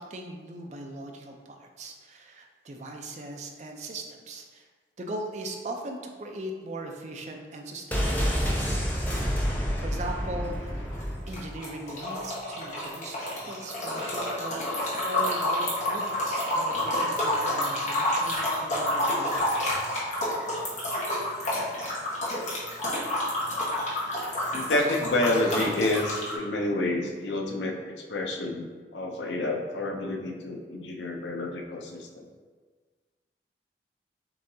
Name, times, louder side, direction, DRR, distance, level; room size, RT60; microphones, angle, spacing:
voice 1, 0.0-4.7 5.0-10.8 11.3-19.9, right 2 dB, 40° right, 2 dB, 0.5 m, -39 dB
sound 1, 7.9-11.7 11.9-12.0, equal, 10° left, 0.5 m, -28 dB
sound 2, 10.7-26.3, left 1 dB, 40° left, 1.1 m, -29 dB
voice 2, 24.5-32.3, left 2 dB, 85° left, 2 dB, 0.6 m, -29 dB
6.7 x 2.8 x 2.7 m, 1.5 s
head